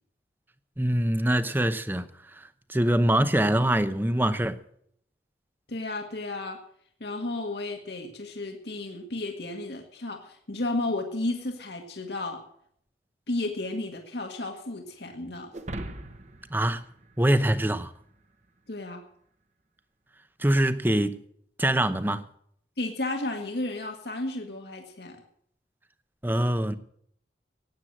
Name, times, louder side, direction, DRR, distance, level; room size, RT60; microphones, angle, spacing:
voice 1, 0.8-2.1 2.4-4.6 16.5-16.8 17.2-17.9 20.4-21.2 21.6-22.2 26.2-26.7, right 1 dB, 10° right, 0.8 m, -24 dB
voice 2, 5.7-6.6 7.0-12.4 13.3-15.5 18.7-19.0 22.8-25.2, left 2 dB, 75° left, 1.8 m, -33 dB
sound 1, 15.5-18.0, right 1 dB, 40° right, 1.2 m, -40 dB
16.0 x 9.4 x 7.5 m
head